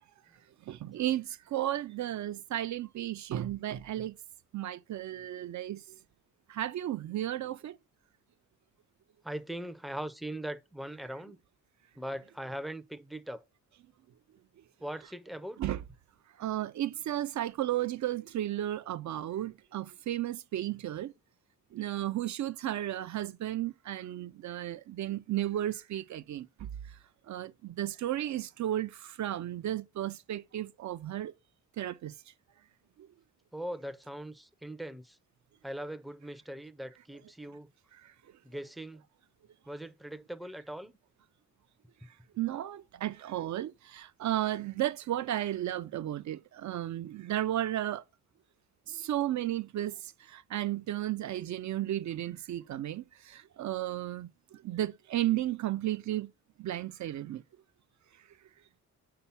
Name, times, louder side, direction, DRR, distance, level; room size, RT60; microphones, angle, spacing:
voice 1, 0.7-4.2 4.5-5.8 6.5-7.8 15.6-15.8 16.4-21.1 21.7-26.7 27.3-31.3 31.8-32.1 42.4-48.0 48.9-56.3 56.6-57.4, right 13 dB, 60° right, 0.4 m, -34 dB
voice 2, 9.2-11.4 12.0-13.4 14.8-15.6 33.5-35.2 35.6-37.7 38.4-39.0 39.7-41.0, right 1 dB, ahead, 0.5 m, -40 dB
5.7 x 4.0 x 5.6 m
wide cardioid pair, 120°, 32 cm